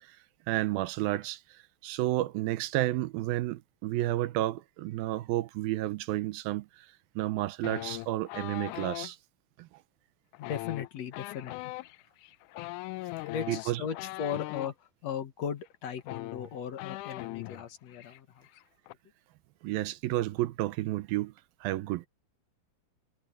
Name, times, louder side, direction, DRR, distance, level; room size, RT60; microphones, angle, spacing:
voice 1, 0.5-1.4 1.8-6.7 7.2-9.2 9.6-9.7 13.5-13.8 19.6-21.3 21.6-22.1, right 16 dB, 85° right, 2.6 m, -31 dB
sound 1, 7.6-9.1 10.3-14.7 15.7-15.8 16.0-17.6 17.9-18.2 18.4-18.9, left 20 dB, 85° left, 1.8 m, -40 dB
voice 2, 10.4-11.5 13.3-14.7 15.0-18.4, left 8 dB, 55° left, 2.3 m, -37 dB
omnidirectional pair, 4.1 m